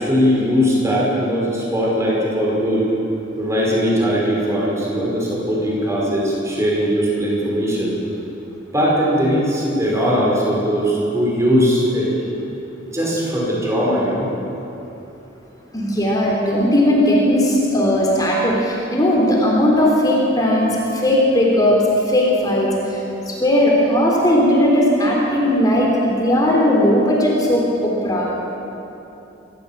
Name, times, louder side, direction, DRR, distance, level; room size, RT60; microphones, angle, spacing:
voice 1, 0.0-2.8 3.4-8.0 8.7-12.5 12.9-14.3, equal, 15° right, -4 dB, 5.3 m, -19 dB
voice 2, 15.7-21.8 22.1-28.3, left 1 dB, 20° left, -3 dB, 3.6 m, -17 dB
27.5 x 13.5 x 7.4 m, 2.9 s
head